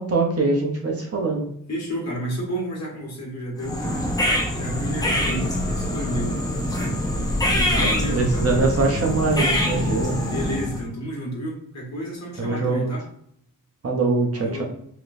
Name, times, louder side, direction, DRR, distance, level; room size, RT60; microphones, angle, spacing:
voice 1, 0.0-1.5 7.5-7.6 8.1-10.2 12.4-12.9 13.8-14.6, right 3 dB, 45° right, 0 dB, 0.8 m, -23 dB
voice 2, 1.7-4.0 4.5-6.3 7.5-8.5 10.3-13.1 14.3-14.6, equal, 50° left, -3 dB, 1.6 m, -31 dB
sound 1, 3.6-10.9, left 1 dB, 10° left, 0.7 m, -24 dB
5.0 x 3.0 x 2.5 m, 0.67 s
wide cardioid pair, 170°, 35 cm